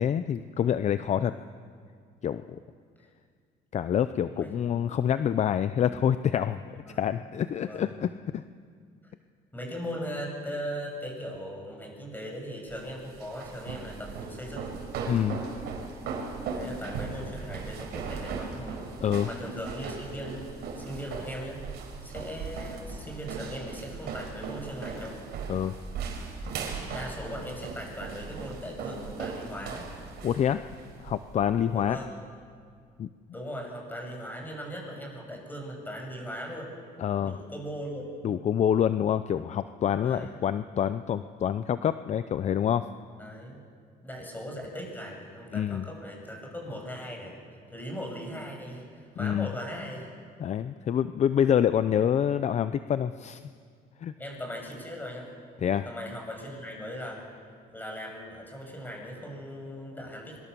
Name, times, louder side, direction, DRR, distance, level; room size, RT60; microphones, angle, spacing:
voice 1, 0.0-1.3 2.2-2.6 3.7-8.4 15.1-15.4 19.0-19.3 25.5-25.7 30.2-30.6 31.0-32.0 33.0-33.1 37.0-37.4 38.2-42.9 45.5-45.9 49.2-49.5 50.4-53.4 54.0-54.1 55.6-55.9, left 9 dB, 45° left, 12 dB, 0.6 m, -27 dB
voice 2, 9.5-14.7 16.5-18.8 19.2-21.6 22.0-25.2 26.9-29.9 31.7-32.1 33.3-36.7 37.2-38.0 40.0-40.4 43.2-43.6 44.0-47.4 47.7-50.1 54.2-55.3 55.9-57.2 57.7-60.4, equal, 10° left, 0 dB, 7.8 m, -39 dB
sound 1, 12.7-31.9, right 5 dB, 75° right, 4.7 m, -38 dB
25.5 x 23.5 x 7.0 m, 2.1 s
cardioid pair, 110°, 17 cm